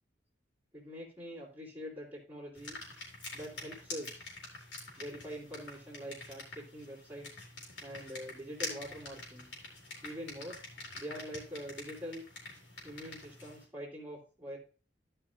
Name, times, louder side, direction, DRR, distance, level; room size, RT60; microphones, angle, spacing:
voice 1, 0.7-2.8 3.3-4.3 5.0-7.4 7.8-9.5 10.0-10.6 11.0-12.2 12.8-14.6, equal, 10° right, -10 dB, 2.8 m, -44 dB
sound 1, 2.5-13.6, left 2 dB, 75° left, 4.0 m, -46 dB
15.0 x 5.7 x 2.5 m, 0.38 s
head